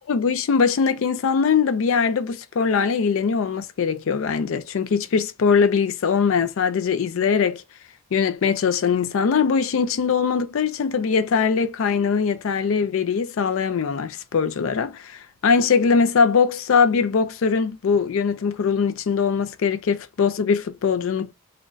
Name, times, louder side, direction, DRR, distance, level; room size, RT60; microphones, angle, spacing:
voice 1, 0.1-7.6 8.1-21.3, left 6 dB, 65° left, 0.4 m, -21 dB
3.7 x 2.2 x 2.4 m
head